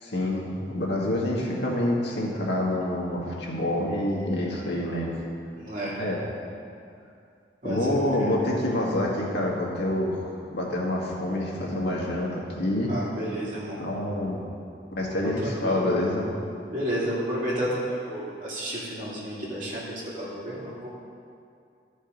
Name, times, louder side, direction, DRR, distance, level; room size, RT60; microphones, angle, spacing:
voice 1, 0.0-5.1 6.0-6.2 7.6-12.9 13.8-14.4 15.0-16.3, left 1 dB, 85° left, -3 dB, 1.8 m, -27 dB
voice 2, 5.6-6.0 7.6-8.0 12.9-13.8 15.2-15.8 16.7-20.9, equal, 50° right, -7 dB, 2.6 m, -31 dB
13.5 x 5.3 x 5.2 m, 2.4 s
head